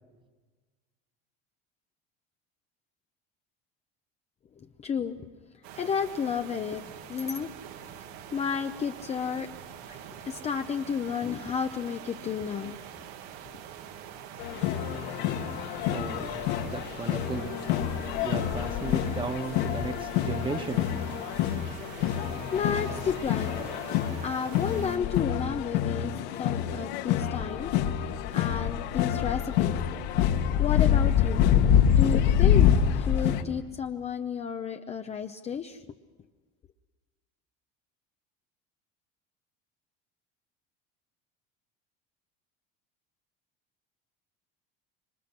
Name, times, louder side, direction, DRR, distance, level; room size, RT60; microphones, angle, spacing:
voice 1, 4.6-5.2 5.8-6.8 7.1-7.5 8.3-9.5 9.9-12.8 22.5-23.6 24.2-26.1 26.4-27.8 28.3-29.8 30.6-31.4 32.0-35.8, left 7 dB, 20° left, 6 dB, 0.7 m, -32 dB
sound 1, 5.6-25.0, right 9 dB, 80° right, 2.2 m, -45 dB
sound 2, 14.4-33.4, left 9 dB, 75° left, 2.2 m, -26 dB
voice 2, 15.9-17.5 18.2-20.9, right 3 dB, 15° right, 7 dB, 1.5 m, -35 dB
27.0 x 24.0 x 6.0 m, 1.4 s
cardioid pair, 165°, 30 cm